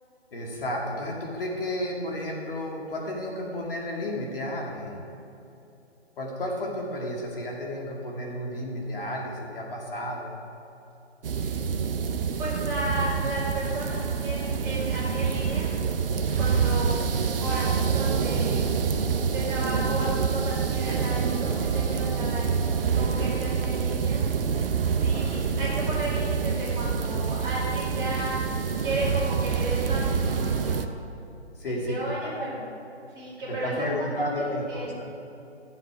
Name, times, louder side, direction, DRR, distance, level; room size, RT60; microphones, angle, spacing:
voice 1, 0.3-5.0 6.2-10.3 16.0-16.2 20.7-20.8 25.1-25.5 31.6-32.6 33.5-35.1, left 1 dB, 50° left, -2 dB, 2.1 m, -32 dB
sound 1, 11.2-30.9, right 6 dB, 55° right, 0.7 m, -26 dB
voice 2, 11.4-11.7 12.4-15.7 16.4-17.0 17.4-18.7 19.3-22.5 22.9-24.2 25.0-28.4 28.8-30.9 31.9-32.7 33.1-33.9 34.7-34.9, right 1 dB, 10° right, -9 dB, 2.4 m, -34 dB
sound 2, 17.1-22.8, right 1 dB, 35° left, 1.3 m, -48 dB
12.5 x 7.7 x 4.9 m, 2.9 s
hypercardioid pair, 155°, 35 cm